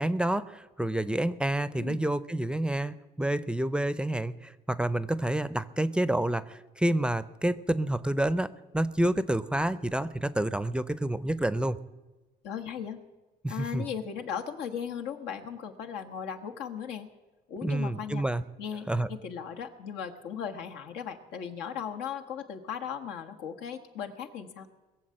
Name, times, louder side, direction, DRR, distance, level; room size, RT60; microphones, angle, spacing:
voice 1, 0.0-11.8 13.4-13.9 17.6-18.4 18.9-19.1, right 1 dB, 5° right, 15 dB, 0.5 m, -28 dB
voice 2, 12.4-13.0 13.5-17.1 17.5-18.2 18.6-24.7, left 8 dB, 85° left, 4 dB, 1.5 m, -37 dB
21.5 x 7.3 x 7.7 m, 1.2 s
cardioid pair, 110°, 17 cm